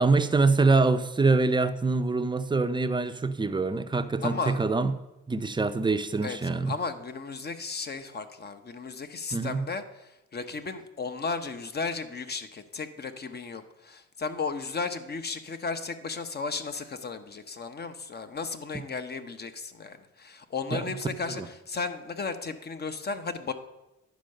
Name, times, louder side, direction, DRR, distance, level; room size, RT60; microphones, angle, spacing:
voice 1, 0.0-4.9 5.3-6.7 9.3-9.6 20.7-20.9 21.4-21.5, right 3 dB, 15° right, 9 dB, 0.6 m, -24 dB
voice 2, 4.2-4.6 6.2-23.5, left 4 dB, 35° left, 9 dB, 0.9 m, -35 dB
10.5 x 4.6 x 6.5 m, 0.95 s
cardioid pair, 90°, 30 cm